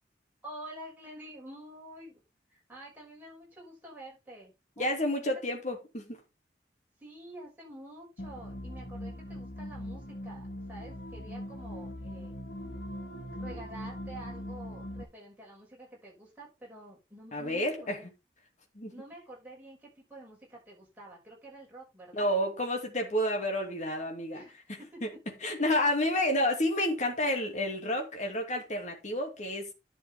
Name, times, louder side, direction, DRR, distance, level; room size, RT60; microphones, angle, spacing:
voice 1, 0.4-2.2 2.5-5.2 7.0-12.3 13.3-18.1 18.9-22.3 24.3-25.0, right 1 dB, 10° right, 6.3 m, -48 dB
voice 2, 4.8-6.2 17.3-18.0 18.7-18.9 22.1-24.4 24.7-25.1 25.4-29.7, left 1 dB, 45° left, 2.6 m, -30 dB
sound 1, 8.2-15.0, equal, 75° left, 1.8 m, -41 dB
10.5 x 7.2 x 3.6 m
head